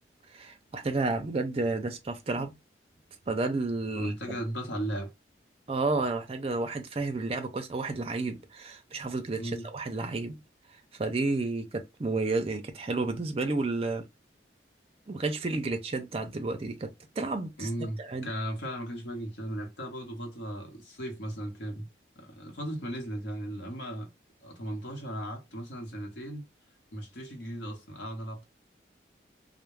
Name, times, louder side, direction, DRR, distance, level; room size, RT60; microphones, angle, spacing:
voice 1, 0.3-2.5 3.3-4.4 5.7-9.4 9.7-10.4 11.0-14.1 15.1-18.3, right 3 dB, 30° right, 0.4 m, -31 dB
voice 2, 3.9-5.1 9.4-9.7 17.6-21.9 22.2-24.1 24.4-26.5 26.9-28.5, right 1 dB, 70° left, 0.9 m, -36 dB
2.2 x 2.1 x 3.1 m
head